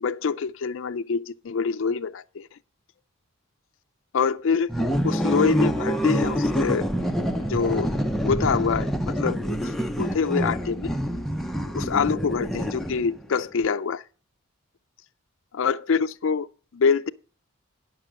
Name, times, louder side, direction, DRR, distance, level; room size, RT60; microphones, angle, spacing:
voice 1, 0.0-2.6 4.1-4.7 5.0-6.9 7.5-7.9 8.2-10.9 11.6-14.0 15.6-16.5 16.7-17.1, left 5 dB, 60° left, 0.4 m, -25 dB
sound 1, 4.6-9.2, right 2 dB, 85° right, 4.6 m, -49 dB
sound 2, 4.7-13.2, equal, ahead, 0.6 m, -26 dB
10.5 x 5.9 x 6.2 m
head